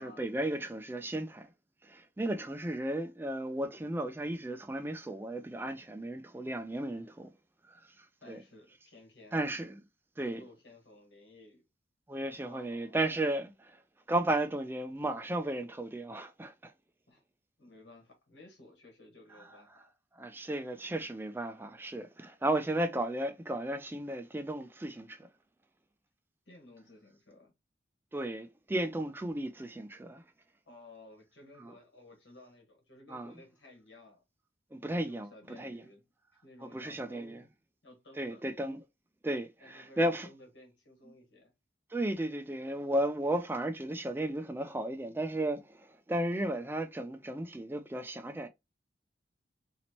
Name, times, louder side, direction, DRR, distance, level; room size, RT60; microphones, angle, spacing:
voice 1, 0.0-1.5 1.8-7.3 7.7-8.4 9.3-9.8 10.2-10.4 12.1-13.8 14.1-16.7 20.1-25.3 28.1-30.2 31.6-31.7 33.1-33.3 34.7-35.8 36.6-37.4 38.2-38.8 39.2-40.3 41.9-48.5, right 1 dB, 10° right, 0.3 m, -34 dB
voice 2, 8.2-9.4 10.2-11.6 12.5-12.9 17.1-17.2 17.6-19.8 26.4-27.5 30.6-34.2 34.8-36.0 36.4-37.5 37.8-38.4 39.6-41.5, left 2 dB, 85° left, 1.6 m, -55 dB
4.0 x 2.9 x 3.0 m
head